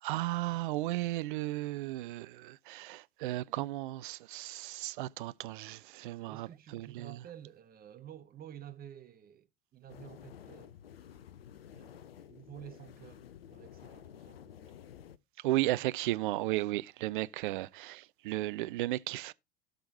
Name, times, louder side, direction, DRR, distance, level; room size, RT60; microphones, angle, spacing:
voice 1, 0.0-7.2 15.4-19.3, right 17 dB, 55° right, 0.5 m, -35 dB
voice 2, 6.1-9.5 9.7-10.7 11.7-12.0 12.3-14.8 17.5-17.7, right 10 dB, 30° right, 1.3 m, -51 dB
sound 1, 9.9-15.2, left 9 dB, 70° left, 0.6 m, -52 dB
17.0 x 5.8 x 2.7 m
figure-of-eight pair, 75°, 31 cm